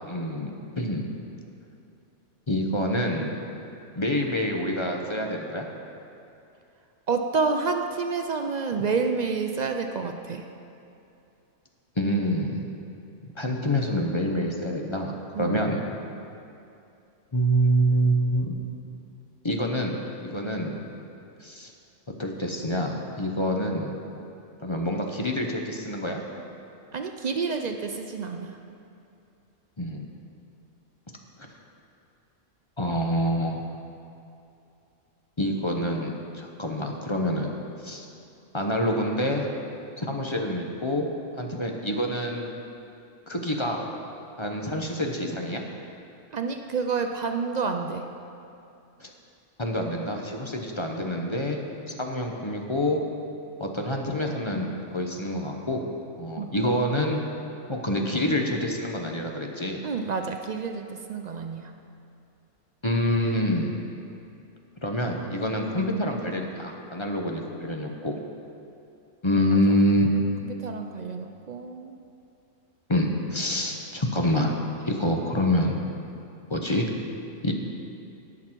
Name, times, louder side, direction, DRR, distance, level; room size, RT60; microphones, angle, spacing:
voice 1, 0.1-1.1 2.5-3.3 4.0-5.7 12.0-12.6 13.4-15.8 17.3-18.6 19.4-20.8 21.4-21.7 22.2-23.9 24.6-26.2 29.8-30.0 31.4-31.5 32.8-33.6 35.4-37.5 37.8-38.1 38.5-39.5 40.0-41.1 41.4-42.5 43.3-43.8 44.4-45.6 49.0-49.1 49.6-51.6 51.9-53.0 53.6-55.9 56.2-57.2 57.7-59.8 62.8-63.7 64.8-68.2 69.2-70.1 72.9-74.6 74.8-75.8 76.5-76.9 77.4-77.5, equal, 25° left, 1 dB, 0.7 m, -26 dB
voice 2, 7.1-10.4 15.3-15.6 26.9-28.6 46.3-48.0 56.4-56.5 59.8-61.7 69.3-69.4 70.4-72.0, right 5 dB, 70° right, 5 dB, 0.4 m, -29 dB
18.0 x 6.2 x 4.5 m, 2.7 s
omnidirectional pair, 1.3 m